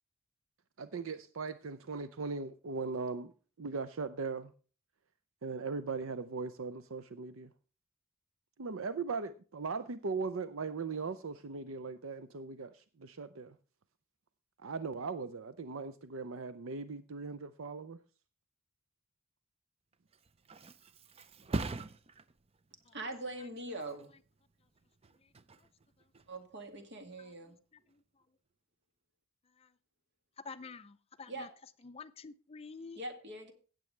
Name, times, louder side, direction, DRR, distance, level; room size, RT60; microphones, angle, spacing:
voice 1, 0.8-3.3 3.6-4.5 5.4-7.5 8.6-13.6 14.6-18.0, right 4 dB, 75° right, 0.6 m, -39 dB
Thump thud, 19.9-27.4 27.8-28.2, right 2 dB, 30° right, 0.5 m, -44 dB
voice 2, 22.9-24.1 26.3-27.6 31.3-31.6 33.0-33.5, right 2 dB, 55° right, 2.2 m, -42 dB
voice 3, 30.4-31.5 31.8-33.0, left 4 dB, 30° left, 0.5 m, -48 dB
16.5 x 7.7 x 3.3 m
head